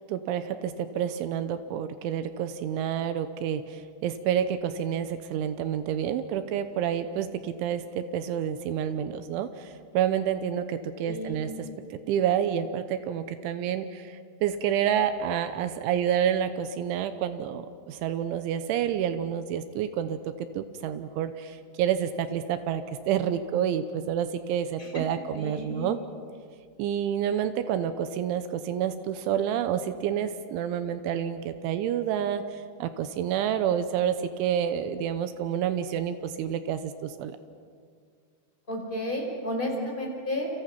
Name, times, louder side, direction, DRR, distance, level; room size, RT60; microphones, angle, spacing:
voice 1, 0.1-11.5 11.9-26.0 26.8-32.4 32.8-37.4, right 9 dB, 80° right, 10 dB, 3.2 m, -29 dB
voice 2, 11.0-11.4 24.8-25.0 25.3-25.9 38.7-40.5, left 1 dB, 10° left, 0 dB, 4.7 m, -32 dB
29.5 x 27.5 x 5.9 m, 2.1 s
omnidirectional pair, 5.6 m